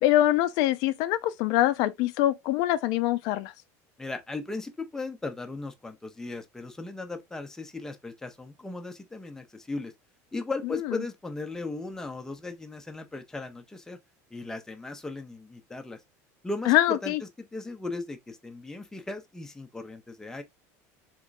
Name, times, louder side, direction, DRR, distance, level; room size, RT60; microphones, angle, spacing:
voice 1, 0.0-3.5 16.7-17.2, left 14 dB, 60° left, 0.3 m, -24 dB
voice 2, 4.0-9.9 10.3-14.0 14.3-16.0 16.4-20.4, left 3 dB, 5° left, 0.5 m, -37 dB
3.6 x 3.0 x 2.5 m
cardioid pair, 150°, 8 cm